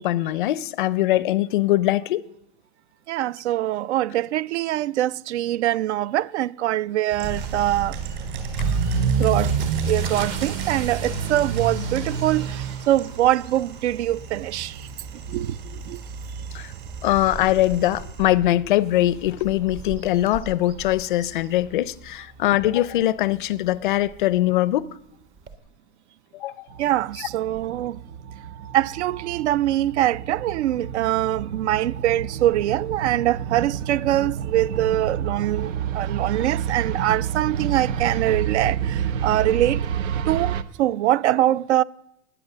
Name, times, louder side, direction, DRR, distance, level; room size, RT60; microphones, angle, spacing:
voice 1, 0.0-2.2 16.5-16.6 17.0-24.8 26.4-26.5, left 15 dB, 45° left, 0.5 m, -22 dB
voice 2, 3.1-8.0 9.2-9.5 9.9-14.7 15.3-15.5 15.9-16.0 26.8-28.0 28.7-39.8 40.3-41.8, right 13 dB, 65° right, 0.5 m, -23 dB
sound 1, 7.1-18.3, right 9 dB, 40° right, 3.6 m, -39 dB
Motor vehicle (road) / Accelerating revving vroom, 7.2-22.1 22.4-22.8 23.3-23.4 23.7-23.8 24.1-24.2 25.5-25.6, right 5 dB, 20° right, 0.7 m, -30 dB
sound 2, 26.7-40.6, right 8 dB, 85° right, 1.0 m, -29 dB
20.0 x 8.8 x 6.7 m
supercardioid pair, 175°, 38 cm